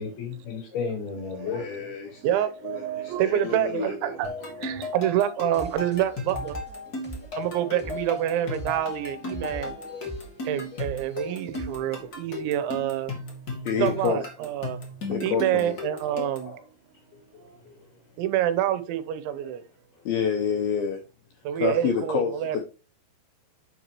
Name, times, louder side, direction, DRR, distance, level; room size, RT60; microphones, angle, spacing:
voice 1, 0.0-2.2 4.1-4.8 7.2-7.3 9.4-10.0 10.7-10.8 11.2-11.6 15.5-15.7 16.1-16.6 17.3-17.8 19.4-19.5 20.0-20.1, left 5 dB, 60° left, 4.3 m, -37 dB
voice 2, 1.5-4.2 13.7-14.2 15.1-15.8 20.1-21.0 21.6-22.6, left 6 dB, 80° left, 2.2 m, -28 dB
voice 3, 2.2-6.6 7.4-9.8 10.4-13.1 13.8-14.8 15.2-16.6 17.4-17.6 18.2-19.6 21.4-22.6, right 11 dB, 85° right, 3.1 m, -27 dB
sound 1, 4.2-16.6, left 2 dB, 35° left, 1.6 m, -36 dB
sound 2, 5.5-12.1, right 2 dB, 10° right, 0.6 m, -43 dB
7.4 x 7.1 x 3.0 m
omnidirectional pair, 5.3 m